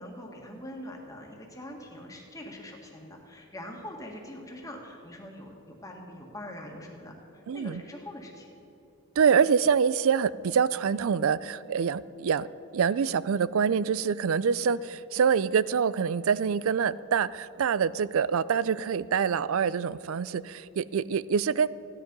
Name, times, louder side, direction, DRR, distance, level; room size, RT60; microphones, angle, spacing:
voice 1, 0.0-8.5, left 1 dB, 15° left, 0 dB, 1.7 m, -43 dB
voice 2, 7.5-7.8 9.2-12.5 12.7-21.7, right 6 dB, 70° right, 18 dB, 0.4 m, -25 dB
15.5 x 10.5 x 5.4 m, 3.0 s
head